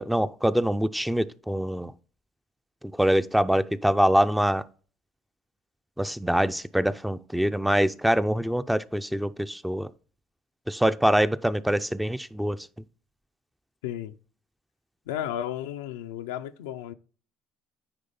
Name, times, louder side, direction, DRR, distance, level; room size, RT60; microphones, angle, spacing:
voice 1, 0.0-1.9 3.0-4.6 6.0-9.9 10.7-12.6, equal, 5° right, 0.4 m, -24 dB
voice 2, 13.8-14.2 15.1-16.9, left 11 dB, 85° left, 0.5 m, -33 dB
9.6 x 3.2 x 5.3 m
supercardioid pair, 75°, 0 cm